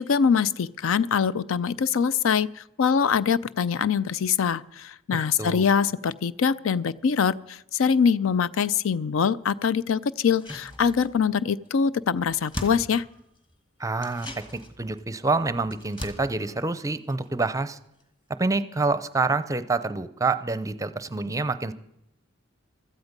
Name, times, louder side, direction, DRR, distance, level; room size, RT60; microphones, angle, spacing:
voice 1, 0.0-13.0, left 6 dB, 70° left, 18 dB, 0.4 m, -23 dB
voice 2, 5.1-5.7 13.8-14.3 14.8-17.8 18.4-21.7, right 3 dB, 15° right, 14 dB, 0.5 m, -27 dB
sound 1, 10.2-11.4 11.6-11.7 12.0-13.5 14.0-17.7 18.0-18.1, equal, 20° left, 1.6 m, -41 dB
16.0 x 13.5 x 5.3 m, 0.80 s
head